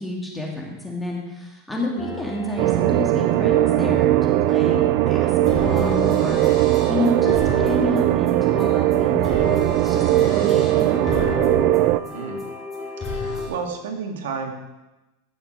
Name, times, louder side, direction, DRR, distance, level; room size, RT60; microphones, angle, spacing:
voice 1, 0.0-5.3 5.6-9.3 9.8-11.4, left 1 dB, 5° left, -2 dB, 2.5 m, -29 dB
sound 1, 2.0-13.5, left 3 dB, 20° left, 4.5 m, -32 dB
sound 2, 2.6-12.0, right 16 dB, 50° right, 0.4 m, -19 dB
voice 2, 11.9-12.4 13.0-14.5, right 5 dB, 85° right, 2 dB, 2.1 m, -32 dB
16.0 x 6.6 x 4.5 m, 1.0 s
supercardioid pair, 140°, 0 cm